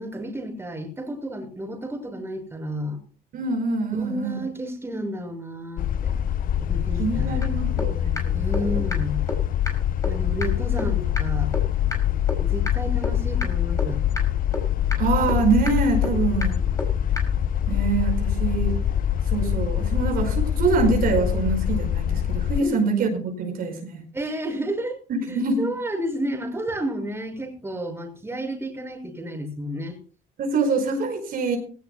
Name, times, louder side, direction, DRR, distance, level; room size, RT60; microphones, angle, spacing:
voice 1, 0.0-3.0 3.9-6.1 6.6-7.6 8.3-9.2 10.0-11.5 12.4-14.0 16.1-16.3 22.6-22.8 24.1-25.0 25.3-30.0, equal, 15° right, 3 dB, 5.7 m, -31 dB
voice 2, 3.3-4.4 7.0-8.3 8.6-8.8 15.0-16.6 17.7-18.8 19.3-24.0 25.1-25.7 30.4-31.6, right 4 dB, 60° right, 3 dB, 5.0 m, -25 dB
sound 1, 5.8-22.6, left 10 dB, 55° left, 0.8 m, -24 dB
sound 2, 7.4-7.5 7.8-7.9 8.2-8.3 8.5-8.6 8.9-9.0 9.3-9.4 9.7-9.8 10.0-10.1 10.4-10.5 10.8-10.9 11.2-11.3 11.5-11.6 11.9-12.0 12.3-12.4 12.7-12.8 13.0-13.1 13.4-13.5 13.8-13.9 14.2-14.3 14.5-14.6 14.9-15.0 15.3-15.4 15.7-15.8 16.0-16.1 16.4-16.5 16.8-16.9 17.2-17.3, left 3 dB, 20° left, 5.2 m, -28 dB
19.5 x 18.0 x 2.2 m, 0.42 s
cardioid pair, 110°, 17 cm